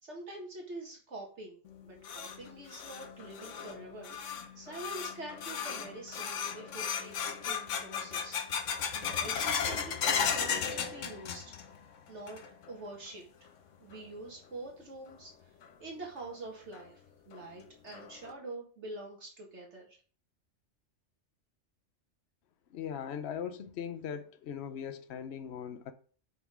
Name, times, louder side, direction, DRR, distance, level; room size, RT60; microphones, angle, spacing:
voice 1, 0.0-1.6 1.8-4.2 4.6-8.4 8.9-11.5 12.1-12.4 12.7-13.2 13.8-15.5 15.8-17.0 17.3-20.0, right 2 dB, 70° right, 2.0 m, -45 dB
sound 1, 1.7-11.8 12.1-12.7 13.1-13.2 13.9-14.0 15.6-15.7 16.2-16.3 16.7-16.8 17.3-17.4 17.9-18.3, left 7 dB, 90° left, 1.2 m, -35 dB
voice 2, 22.7-25.9, left 8 dB, 65° left, 1.0 m, -39 dB
5.8 x 5.4 x 4.9 m
omnidirectional pair, 1.2 m